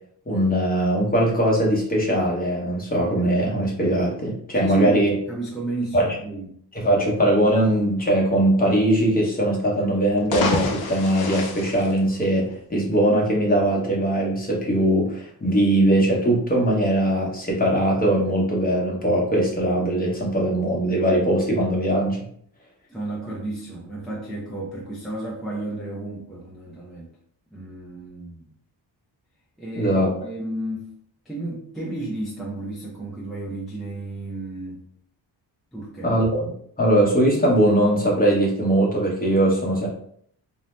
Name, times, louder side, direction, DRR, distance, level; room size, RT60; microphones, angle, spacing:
voice 1, 0.3-5.2 5.9-6.1 6.7-22.2 29.8-30.1 36.0-36.5 36.8-39.9, right 1 dB, 20° left, -3 dB, 0.8 m, -21 dB
voice 2, 4.5-5.0 5.3-6.5 22.9-27.1 27.5-28.5 29.6-30.8 31.3-34.8 35.7-36.1, right 2 dB, ahead, -6 dB, 0.4 m, -32 dB
sound 1, 10.1-12.7, left 3 dB, 55° left, 0.6 m, -29 dB
2.6 x 2.0 x 3.1 m, 0.63 s
wide cardioid pair, 120°, 45 cm